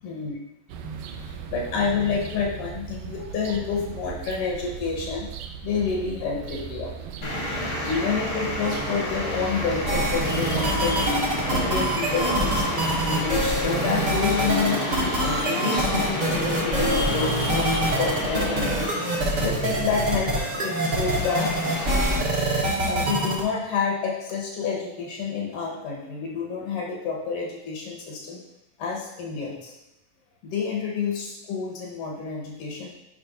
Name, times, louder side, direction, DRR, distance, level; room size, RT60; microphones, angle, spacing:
voice 1, 0.0-0.4 0.8-5.3 5.6-6.9 7.8-11.0 11.5-18.9 19.4-21.5 22.9-28.4 28.8-29.7 30.4-32.9, left 5 dB, 80° left, -3 dB, 2.8 m, -29 dB
sound 1, 0.7-13.6, right 7 dB, 80° right, 2.1 m, -38 dB
Traffic noise roadway noise, 7.2-22.2, left 1 dB, 50° left, 1.1 m, -30 dB
sound 2, 9.9-23.4, right 1 dB, 50° right, 1.3 m, -25 dB
10.5 x 5.4 x 2.6 m, 0.89 s
omnidirectional pair, 3.7 m